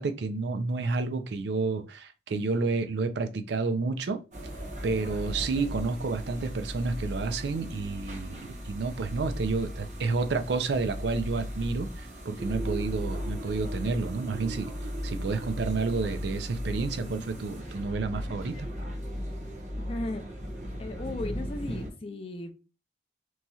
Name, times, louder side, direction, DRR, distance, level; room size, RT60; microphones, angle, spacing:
voice 1, 0.0-4.2 4.8-14.7 15.0-18.7, right 4 dB, 70° right, 0.4 m, -30 dB
sound 1, 4.3-21.9, equal, 40° right, 0.8 m, -36 dB
voice 2, 19.7-20.2 20.8-22.5, left 1 dB, 30° left, 0.4 m, -36 dB
3.0 x 2.7 x 2.3 m
head